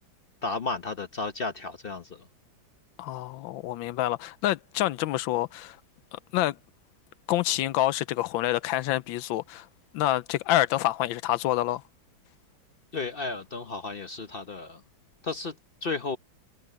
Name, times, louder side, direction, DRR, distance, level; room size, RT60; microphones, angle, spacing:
voice 1, 0.4-2.3 12.9-14.8 15.2-15.6 15.8-16.2, left 3 dB, 50° left, 0.7 m, -33 dB
voice 2, 3.0-5.8 6.1-6.6 7.3-9.7 9.9-11.8, left 14 dB, 90° left, 1.4 m, -27 dB
omnidirectional pair, 2.1 m